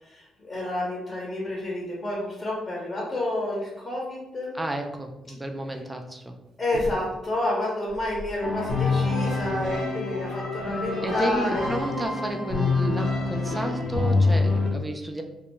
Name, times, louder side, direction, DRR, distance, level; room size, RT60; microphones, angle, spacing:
voice 1, 0.0-4.6 6.6-11.8, left 1 dB, 30° left, -4 dB, 0.7 m, -30 dB
voice 2, 4.5-6.3 11.0-15.2, right 1 dB, 15° right, 4 dB, 0.4 m, -31 dB
sound 1, 6.7-7.4 7.8-8.6 9.0-9.1, equal, 85° right, 0.5 m, -38 dB
sound 2, 8.4-14.7, left 3 dB, 75° left, 0.7 m, -26 dB
2.3 x 2.1 x 2.9 m, 0.95 s
cardioid pair, 90°, 0 cm